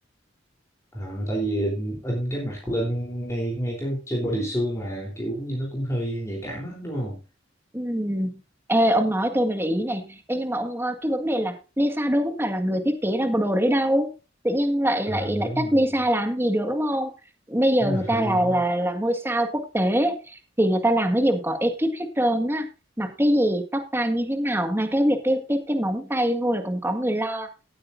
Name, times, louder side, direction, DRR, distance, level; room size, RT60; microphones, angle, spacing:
voice 1, 0.9-7.2 15.1-16.0 17.8-18.6, right 1 dB, 15° left, -2 dB, 3.5 m, -29 dB
voice 2, 7.7-8.4 8.7-14.1 14.4-17.1 17.5-20.2 20.6-22.7 23.0-27.5, equal, 10° right, 7 dB, 1.7 m, -23 dB
17.5 x 8.8 x 2.6 m, 0.30 s
head